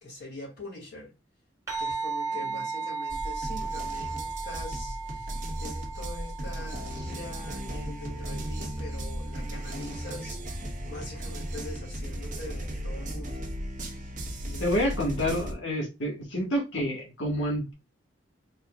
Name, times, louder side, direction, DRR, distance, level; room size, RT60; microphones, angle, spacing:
voice 1, 0.0-1.1 1.8-13.5 13.9-14.7, left 1 dB, 60° left, 2.3 m, -43 dB
sound 1, 1.7-10.4, right 4 dB, 15° right, 1.4 m, -37 dB
sound 2, 3.1-15.5, right 1 dB, 45° right, 1.1 m, -36 dB
voice 2, 14.6-17.7, equal, 80° left, 1.6 m, -28 dB
4.3 x 3.7 x 2.3 m
head